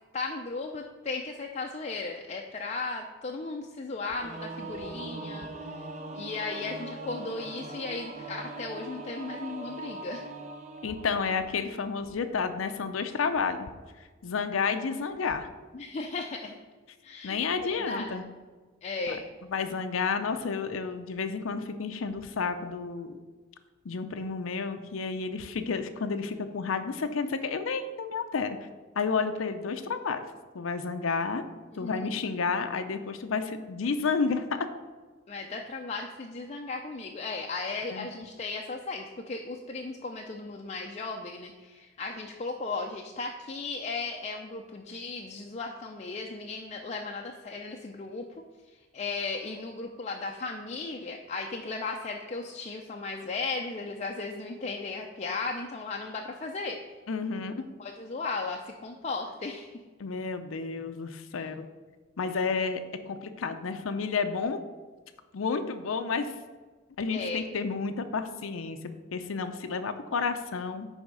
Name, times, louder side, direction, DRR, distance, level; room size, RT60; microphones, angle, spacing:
voice 1, 0.1-5.9 6.1-10.3 15.7-16.6 17.0-18.2 18.8-19.2 31.7-32.1 35.3-48.2 48.9-56.8 57.8-59.8 67.1-67.4, left 3 dB, 35° left, 1 dB, 0.5 m, -36 dB
Singing / Musical instrument, 4.2-12.0, right 2 dB, 35° right, 0.8 m, -41 dB
voice 2, 10.8-13.7 14.2-15.5 17.2-18.2 19.1-19.2 19.5-23.1 23.8-28.6 29.0-30.2 30.5-31.4 31.8-34.7 37.9-38.1 57.1-57.6 60.0-61.7 62.2-64.6 65.3-66.3 67.0-70.9, left 5 dB, 90° left, 8 dB, 0.5 m, -31 dB
9.6 x 3.5 x 5.4 m, 1.4 s
head